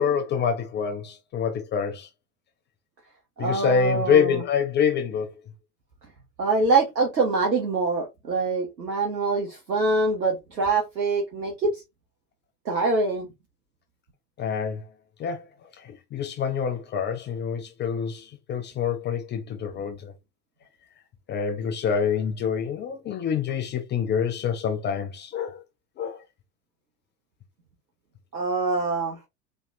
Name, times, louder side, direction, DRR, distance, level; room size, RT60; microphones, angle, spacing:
voice 1, 0.0-2.1 3.4-5.3 14.4-14.9 15.2-15.5 15.8-20.1 21.3-25.6 26.0-26.2, left 7 dB, 20° left, 0.5 m, -26 dB
voice 2, 3.4-4.4 6.4-11.8 12.6-13.3 28.3-29.3, right 3 dB, 85° right, 1.3 m, -24 dB
4.2 x 3.3 x 2.6 m
figure-of-eight pair, 85°, 49 cm